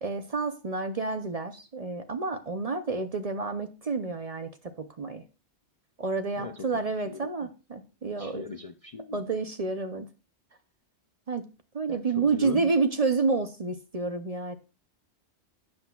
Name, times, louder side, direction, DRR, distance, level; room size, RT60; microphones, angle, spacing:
voice 1, 0.0-5.2 6.0-8.5 9.1-10.1 11.3-11.4 11.7-14.5, right 4 dB, 40° right, 9 dB, 0.6 m, -29 dB
voice 2, 6.3-6.7 7.0-7.5 8.2-9.2 11.9-12.7, left 4 dB, 45° left, 8 dB, 0.5 m, -39 dB
11.5 x 7.6 x 2.3 m, 0.32 s
omnidirectional pair, 1.2 m